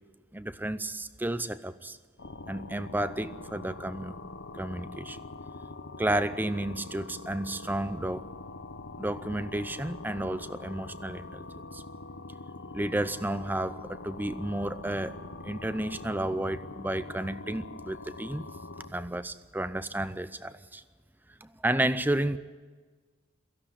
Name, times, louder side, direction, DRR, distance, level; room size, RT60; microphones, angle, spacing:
voice 1, 0.3-2.0 2.5-4.2 4.5-5.2 6.0-8.3 9.0-11.5 11.7-11.8 12.7-15.2 15.4-18.4 18.9-20.8 21.4-22.4, right 1 dB, 10° right, 14 dB, 0.5 m, -32 dB
sound 1, 2.2-18.9, left 3 dB, 65° left, 1.1 m, -43 dB
17.0 x 15.0 x 9.9 m, 1.4 s
head